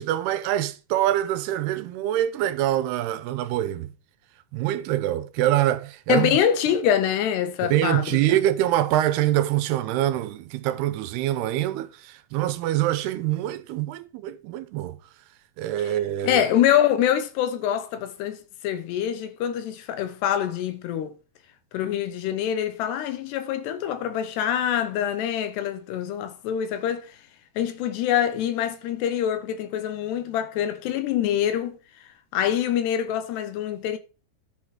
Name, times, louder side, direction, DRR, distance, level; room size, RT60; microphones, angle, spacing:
voice 1, 0.0-3.9 4.5-6.4 7.6-15.0 15.6-16.4, right 13 dB, 80° right, 2.8 m, -25 dB
voice 2, 6.1-8.4 16.2-21.2 21.7-27.2 27.6-31.8 32.3-34.0, left 10 dB, 90° left, 3.3 m, -25 dB
10.5 x 7.0 x 4.9 m
omnidirectional pair, 4.6 m